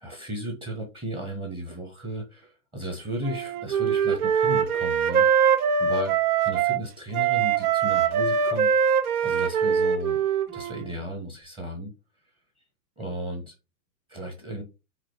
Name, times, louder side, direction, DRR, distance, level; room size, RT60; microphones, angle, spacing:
voice 1, 0.0-6.1 6.4-10.2 10.5-11.9 13.0-13.5 14.1-14.6, right 1 dB, 10° right, 1.1 m, -35 dB
Wind instrument woodwind instrument, 3.2-6.8 7.1-10.9, right 7 dB, 60° right, 1.1 m, -23 dB
5.0 x 4.3 x 4.6 m
hypercardioid pair, 150°, 49 cm